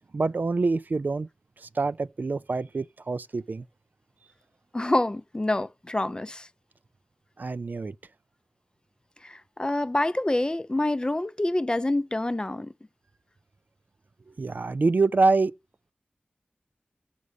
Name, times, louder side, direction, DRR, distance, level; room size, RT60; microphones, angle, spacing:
voice 1, 0.1-1.3 1.6-3.6 7.4-7.9 14.4-15.5, right 3 dB, 60° right, 0.4 m, -26 dB
voice 2, 4.7-6.5 9.2-12.7, left 1 dB, 25° left, 0.5 m, -27 dB
6.2 x 5.4 x 6.4 m
wide cardioid pair, 65°, 4 cm